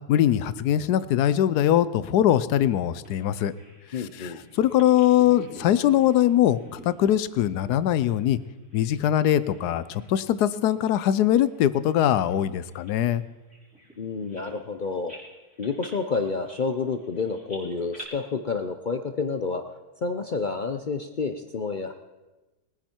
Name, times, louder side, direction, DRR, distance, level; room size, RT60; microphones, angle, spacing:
voice 1, 0.1-3.5 4.2-8.4 8.7-13.2, left 11 dB, 80° left, 16 dB, 1.2 m, -22 dB
Bird vocalization bird call bird song, 3.0-9.0 9.3-10.2 10.5-10.7 11.3-14.7 15.1-18.0, right 1 dB, 5° right, 5.0 m, -49 dB
voice 2, 3.9-4.4 14.0-15.1 15.6-19.6 20.0-21.9, left 4 dB, 55° left, 7 dB, 0.5 m, -29 dB
21.0 x 10.0 x 4.4 m, 1.1 s
omnidirectional pair, 1.7 m